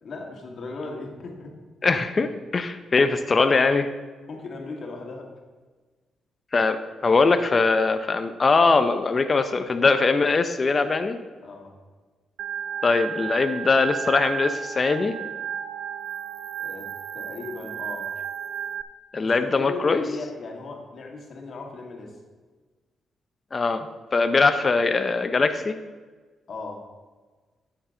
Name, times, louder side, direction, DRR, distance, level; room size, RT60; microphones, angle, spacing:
voice 1, 0.0-1.5 4.3-5.3 11.4-11.7 16.6-16.9 17.1-18.1 19.2-22.2 26.5-26.8, left 3 dB, 55° left, 1 dB, 2.1 m, -37 dB
voice 2, 1.8-3.9 6.5-6.8 7.0-11.2 12.8-15.1 19.1-20.0 23.5-23.9 24.1-25.8, left 4 dB, 35° left, 8 dB, 0.6 m, -21 dB
Organ, 12.4-18.8, right 8 dB, 80° right, 0.4 m, -33 dB
10.0 x 8.1 x 3.8 m, 1.3 s
cardioid pair, 105°, 0 cm